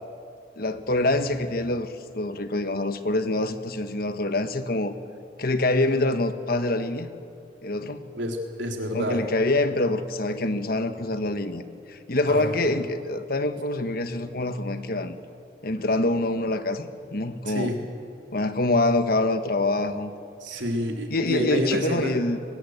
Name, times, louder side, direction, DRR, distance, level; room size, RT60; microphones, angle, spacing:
voice 1, 0.6-4.9 5.4-7.1 7.6-8.0 8.9-11.6 11.9-15.2 15.6-17.7 18.3-20.1 20.5-20.6 21.1-22.4, left 2 dB, 55° left, 9 dB, 1.3 m, -25 dB
voice 2, 8.2-9.2 12.3-12.6 17.5-17.8 20.4-22.2, equal, 80° right, 2 dB, 3.7 m, -28 dB
22.5 x 21.5 x 8.2 m, 2.5 s
head